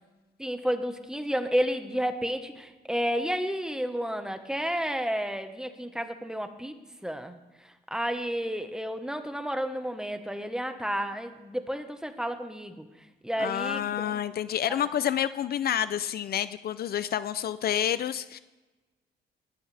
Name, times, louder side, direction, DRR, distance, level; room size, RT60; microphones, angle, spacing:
voice 1, 0.4-6.8 7.0-7.4 7.9-12.9 13.2-14.2, equal, 5° right, 7 dB, 1.3 m, -31 dB
voice 2, 13.4-18.4, left 10 dB, 60° left, 14 dB, 0.5 m, -29 dB
20.0 x 14.0 x 3.4 m, 1.1 s
cardioid pair, 110°, 18 cm